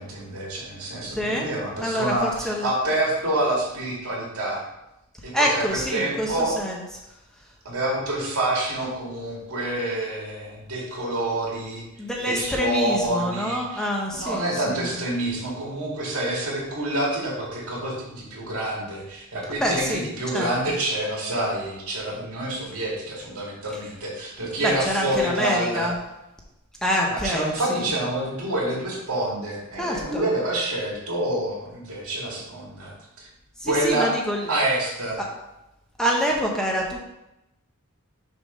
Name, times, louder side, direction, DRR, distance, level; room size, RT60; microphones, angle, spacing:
voice 1, 0.0-4.6 5.2-6.6 7.6-11.8 12.2-25.9 27.1-32.9 33.7-34.1 34.5-35.2, right 1 dB, 70° right, -3 dB, 2.2 m, -27 dB
voice 2, 1.1-1.5 1.8-2.7 5.3-6.8 12.0-14.9 19.5-20.8 24.6-25.9 26.8-27.9 29.8-30.2 33.6-34.4 35.2-35.3 36.0-37.1, equal, 5° left, -2 dB, 0.7 m, -26 dB
6.5 x 3.5 x 5.2 m, 0.92 s
head